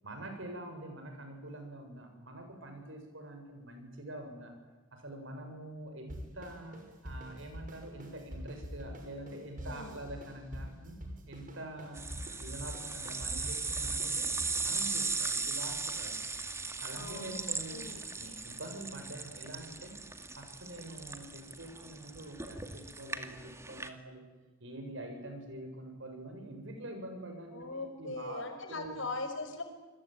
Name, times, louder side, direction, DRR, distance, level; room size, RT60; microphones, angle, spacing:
voice 1, 0.0-4.5 4.9-6.8 7.0-11.0 11.3-12.0 12.3-14.3 14.6-16.2 16.8-17.8 18.2-20.0 20.3-24.2 24.6-28.4 28.7-29.0, right 1 dB, 65° right, 5 dB, 7.5 m, -45 dB
sound 1, 6.1-14.6, equal, 40° right, 6.0 m, -45 dB
voice 2, 9.6-10.0 16.9-17.4 17.7-18.1 27.5-29.6, left 3 dB, 65° left, 6 dB, 6.1 m, -40 dB
sound 2, 11.9-23.9, right 4 dB, 15° right, 2.1 m, -38 dB
29.0 x 21.5 x 9.4 m, 1.2 s
head